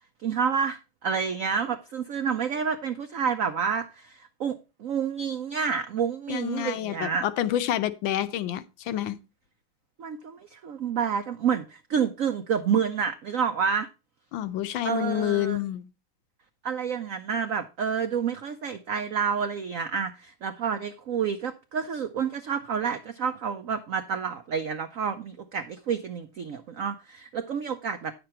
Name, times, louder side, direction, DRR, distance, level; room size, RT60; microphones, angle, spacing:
voice 1, 0.2-7.2 10.0-13.9 14.8-15.6 16.6-28.1, right 7 dB, 80° right, 0.7 m, -29 dB
voice 2, 6.3-9.2 14.3-15.9, left 12 dB, 75° left, 1.4 m, -28 dB
9.7 x 6.8 x 4.3 m
omnidirectional pair, 2.2 m